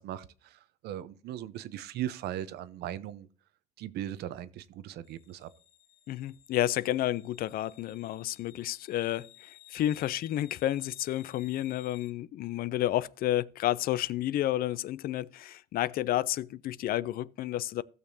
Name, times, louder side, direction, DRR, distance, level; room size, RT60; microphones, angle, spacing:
voice 1, 0.0-3.3 3.8-5.5, right 12 dB, 75° right, 0.7 m, -38 dB
sound 1, 5.0-12.1, left 13 dB, 90° left, 1.1 m, -57 dB
voice 2, 6.1-17.8, left 13 dB, 60° left, 0.4 m, -31 dB
16.0 x 6.6 x 2.7 m
cardioid pair, 110°, 17 cm